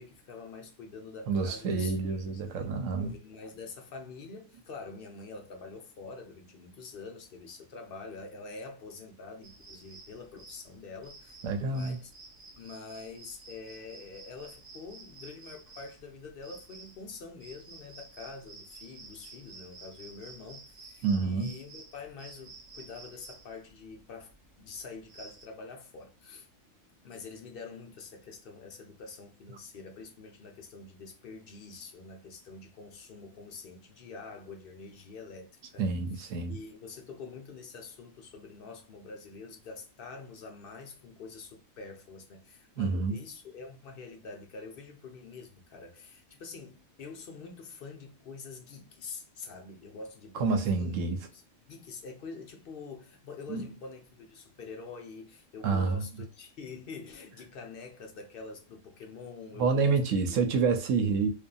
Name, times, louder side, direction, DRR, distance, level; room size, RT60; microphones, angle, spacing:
voice 1, 0.0-2.7 3.0-12.1 12.6-26.5 27.0-36.0 36.5-51.0 51.6-60.0, left 4 dB, 55° left, 0.7 m, -46 dB
voice 2, 1.3-3.1 11.4-12.0 21.0-21.5 35.8-36.6 42.8-43.2 50.3-51.3 53.5-53.7 55.6-56.0 59.6-61.3, right 4 dB, 75° right, 1.0 m, -28 dB
sound 1, 9.4-25.4, right 3 dB, 50° right, 0.7 m, -52 dB
2.6 x 2.4 x 2.3 m
omnidirectional pair, 1.4 m